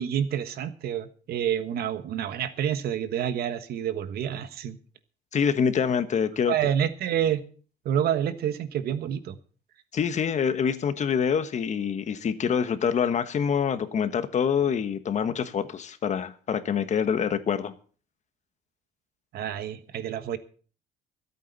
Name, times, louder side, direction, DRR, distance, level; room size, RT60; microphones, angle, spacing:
voice 1, 0.0-4.8 6.5-7.4 7.8-9.4 19.3-20.4, right 9 dB, 70° right, 1.4 m, -28 dB
voice 2, 5.3-6.5 9.9-17.7, left 7 dB, 45° left, 1.3 m, -26 dB
24.0 x 8.6 x 4.1 m
cardioid pair, 110°, 17 cm